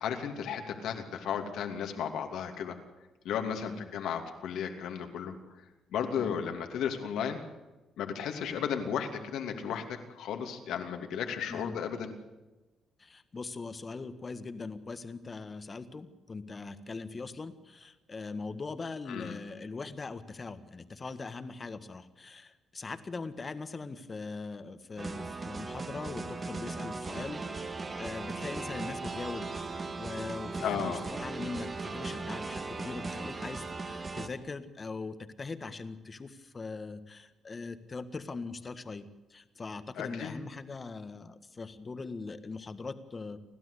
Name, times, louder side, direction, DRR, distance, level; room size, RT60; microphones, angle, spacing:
voice 1, 0.0-2.8 3.2-5.3 5.9-7.4 8.0-12.1 19.1-19.4 30.6-31.0 40.0-40.3, left 8 dB, 80° left, 4 dB, 2.7 m, -34 dB
voice 2, 13.0-29.7 30.0-43.4, left 4 dB, 30° left, 10 dB, 1.6 m, -41 dB
sound 1, 25.0-34.3, right 3 dB, 35° right, 2.0 m, -38 dB
30.0 x 12.5 x 8.4 m, 1.1 s
cardioid pair, 90°, 0 cm